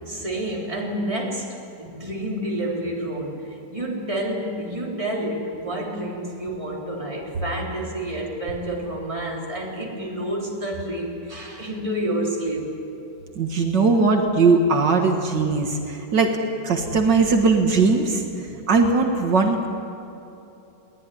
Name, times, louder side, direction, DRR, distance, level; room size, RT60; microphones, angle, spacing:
voice 1, 0.1-12.7 18.3-18.5, right 1 dB, 20° right, -2 dB, 3.6 m, -29 dB
voice 2, 13.4-16.4 16.6-18.2 18.7-19.7, right 4 dB, 75° right, 3 dB, 2.3 m, -19 dB
21.5 x 18.5 x 10.0 m, 2.9 s
omnidirectional pair, 1.9 m